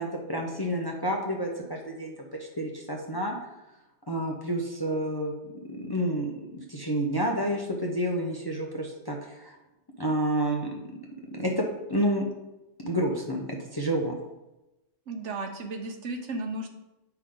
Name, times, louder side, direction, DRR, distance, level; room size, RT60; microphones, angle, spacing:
voice 1, 0.0-2.3 2.6-3.3 4.1-5.3 5.6-9.6 10.0-10.7 11.3-12.2 12.8-14.2, right 1 dB, 20° left, 0 dB, 0.8 m, -29 dB
voice 2, 15.1-16.7, right 2 dB, 70° right, 4 dB, 1.2 m, -34 dB
8.4 x 5.7 x 3.8 m, 0.97 s
omnidirectional pair, 1.3 m